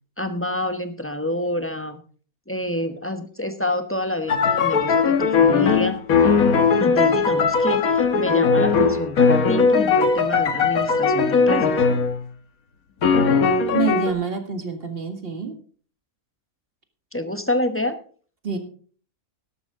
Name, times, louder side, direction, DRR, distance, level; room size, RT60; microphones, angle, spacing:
voice 1, 0.2-2.0 2.5-6.0 6.8-11.8 17.1-18.0, left 1 dB, 10° left, 8 dB, 0.9 m, -27 dB
sound 1, 4.3-12.2 13.0-14.1, left 5 dB, 70° left, 1.6 m, -19 dB
voice 2, 13.7-15.6 18.4-18.6, right 5 dB, 40° right, 6 dB, 2.0 m, -27 dB
12.5 x 12.5 x 3.7 m, 0.43 s
omnidirectional pair, 1.6 m